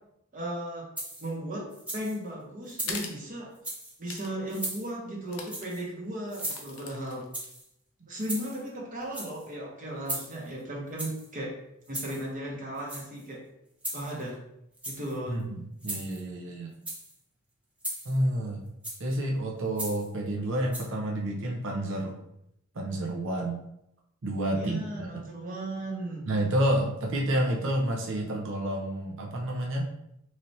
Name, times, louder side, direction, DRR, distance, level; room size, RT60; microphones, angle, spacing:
voice 1, 0.3-0.8 1.2-1.7 1.9-3.5 4.0-7.2 8.1-11.5 11.9-13.4 13.9-14.3 14.9-15.4 24.6-26.3, right 1 dB, 40° right, -3 dB, 0.9 m, -36 dB
sound 1, 1.0-1.3 1.7-2.2 2.7-3.1 3.5-3.9 4.5-4.9 5.5-5.8 6.3-6.9 7.3-7.7 8.2-8.7 9.0-9.5 10.1-10.5 11.0-11.3 11.9-12.2 12.8-13.3 13.8-14.3 14.7-15.2 15.8-16.2 16.7-17.1 17.8-18.2 18.8-19.1 19.8-20.1 20.7-20.8, right 1 dB, 5° right, 0.8 m, -37 dB
sound 2, 2.8-3.2 4.1-4.3 4.6-4.7 5.3-5.7 6.3-7.5, left 5 dB, 80° left, 0.6 m, -40 dB
voice 2, 15.3-16.7 18.0-18.6 19.0-22.2 22.7-23.6 24.2-25.2 26.3-29.9, right 1 dB, 60° right, -1 dB, 0.7 m, -29 dB
4.1 x 3.2 x 2.7 m, 0.79 s
head